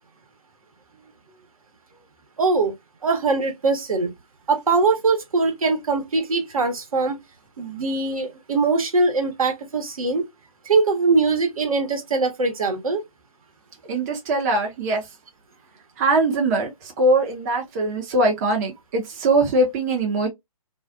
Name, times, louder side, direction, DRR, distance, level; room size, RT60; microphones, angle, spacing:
voice 1, 2.4-2.7 3.0-4.1 4.5-7.2 7.6-10.2 10.6-13.0, right 3 dB, 70° right, 1.0 m, -22 dB
voice 2, 13.8-15.1 16.0-20.3, right 2 dB, 30° right, 0.6 m, -22 dB
2.4 x 2.3 x 2.4 m
figure-of-eight pair, 140°, 19 cm